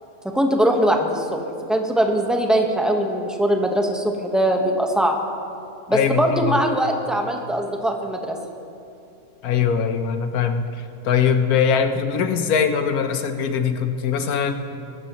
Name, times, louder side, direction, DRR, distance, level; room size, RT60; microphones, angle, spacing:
voice 1, 0.3-1.4 1.7-5.2 5.9-8.4, right 1 dB, ahead, 2 dB, 1.0 m, -21 dB
voice 2, 5.9-6.6 9.4-10.7 11.0-14.5, left 7 dB, 90° left, 8 dB, 1.3 m, -21 dB
22.5 x 12.0 x 3.0 m, 2.7 s
omnidirectional pair, 1.5 m